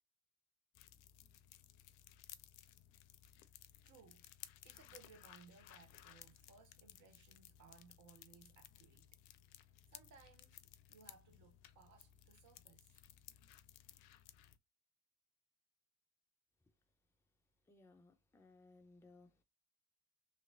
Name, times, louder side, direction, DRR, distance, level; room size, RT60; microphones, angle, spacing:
sound 1, 0.7-14.6, left 12 dB, 60° left, 0.5 m, -60 dB
voice 1, 3.8-4.2 4.6-9.2 9.9-10.6 10.9-13.0, right 5 dB, 45° right, 0.8 m, -64 dB
voice 2, 17.6-19.4, left 3 dB, 5° left, 0.6 m, -64 dB
3.0 x 2.9 x 2.6 m
hypercardioid pair, 55°, 41 cm